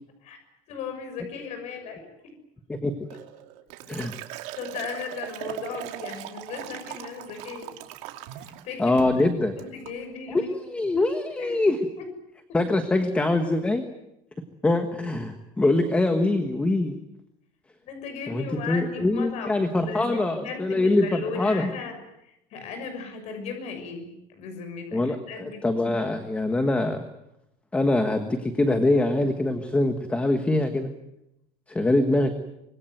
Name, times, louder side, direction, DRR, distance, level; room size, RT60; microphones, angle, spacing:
voice 1, 0.7-2.0 3.9-4.0 4.6-7.7 8.4-9.0 9.6-10.5 11.4-11.6 17.8-22.0 22.2-25.0 25.3-25.6, left 5 dB, 45° left, 6 dB, 6.4 m, -36 dB
Liquid, 3.1-8.7 9.0-9.2 9.6-10.0, right 13 dB, 80° right, 2.7 m, -39 dB
voice 2, 8.8-9.6 10.3-11.8 12.5-13.8 14.6-16.9 18.3-21.7 24.9-27.1 27.7-30.9 31.7-32.3, left 2 dB, 10° left, 7 dB, 1.4 m, -24 dB
25.5 x 21.5 x 9.2 m, 0.85 s
cardioid pair, 180°, 16 cm